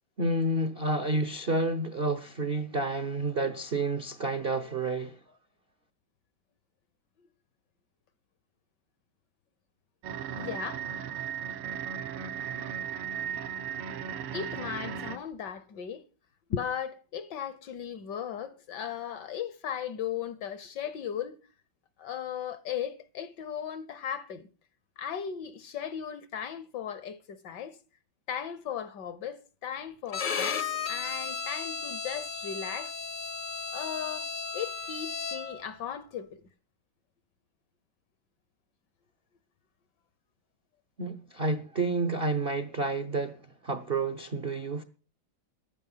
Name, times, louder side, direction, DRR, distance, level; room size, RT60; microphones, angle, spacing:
voice 1, 0.2-5.2 41.0-44.8, right 2 dB, 55° right, 0.6 m, -30 dB
sound 1, 10.0-15.2, right 8 dB, 85° right, 1.9 m, -36 dB
voice 2, 10.4-10.8 14.3-16.0 16.5-21.4 22.0-24.5 25.0-27.8 28.3-32.9 33.7-34.3 34.5-36.4, left 8 dB, 65° left, 1.2 m, -37 dB
Bowed string instrument, 30.1-35.7, left 5 dB, 45° left, 0.6 m, -34 dB
15.0 x 10.5 x 5.5 m
omnidirectional pair, 2.4 m